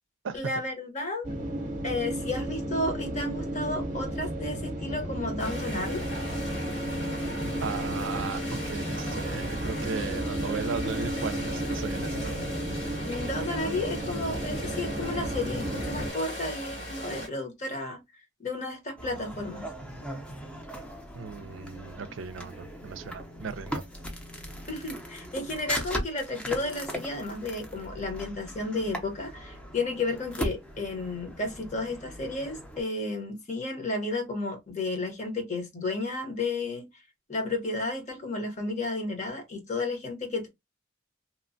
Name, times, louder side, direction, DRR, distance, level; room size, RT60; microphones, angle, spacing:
voice 1, 0.3-1.3 1.8-6.1 13.0-18.0 18.4-19.7 24.7-36.9 37.3-40.5, left 2 dB, 40° left, 0.9 m, -32 dB
sound 1, 1.2-16.1, right 1 dB, 40° right, 0.7 m, -33 dB
sound 2, 5.4-17.3, equal, 70° left, 1.8 m, -38 dB
voice 2, 7.6-12.4 21.1-23.8, right 5 dB, 85° right, 0.4 m, -36 dB
sound 3, 19.0-32.8, equal, 5° left, 0.5 m, -39 dB
3.0 x 2.1 x 2.5 m
head